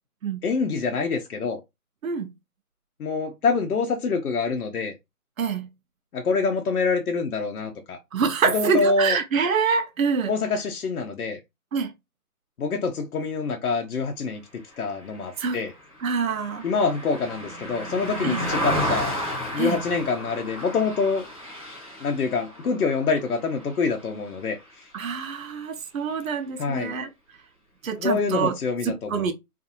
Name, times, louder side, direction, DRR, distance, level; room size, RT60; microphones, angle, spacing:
voice 1, 0.4-1.6 3.0-4.9 6.1-8.0 8.5-9.2 10.3-11.4 12.6-15.7 16.6-19.2 19.5-21.3 22.0-24.6 26.6-27.0 28.0-29.3, left 4 dB, 70° left, 0.7 m, -26 dB
voice 2, 5.4-5.7 8.1-10.3 11.7-11.9 15.4-15.6 16.0-16.6 18.2-18.4 19.6-19.8 24.9-27.1 27.8-28.6 28.8-29.3, right 5 dB, 60° right, 0.6 m, -25 dB
Car passing by, 15.1-24.6 25.0-25.2, equal, 25° right, 0.7 m, -33 dB
2.5 x 2.5 x 2.7 m
hypercardioid pair, 175°, 45 cm